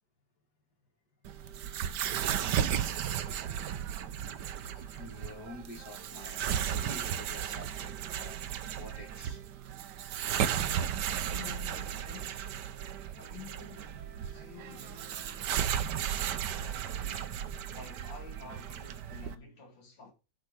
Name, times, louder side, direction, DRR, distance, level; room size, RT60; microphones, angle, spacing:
sound 1, 1.2-19.4, right 9 dB, 70° right, 1.3 m, -35 dB
voice 1, 4.7-8.4 8.7-9.4, left 2 dB, 60° left, 2.1 m, -48 dB
voice 2, 10.7-12.5 13.1-20.1, left 5 dB, 85° left, 3.1 m, -51 dB
9.0 x 4.8 x 6.2 m
omnidirectional pair, 2.0 m